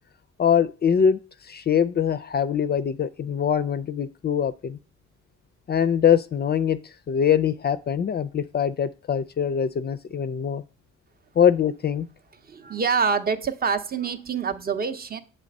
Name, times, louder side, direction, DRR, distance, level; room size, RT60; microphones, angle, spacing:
voice 1, 0.4-4.8 5.7-6.8 7.1-10.6 11.4-12.1, left 8 dB, 35° left, 0.4 m, -23 dB
voice 2, 12.5-15.2, right 5 dB, 30° right, 0.6 m, -26 dB
7.5 x 3.3 x 5.2 m
cardioid pair, 90°, 30 cm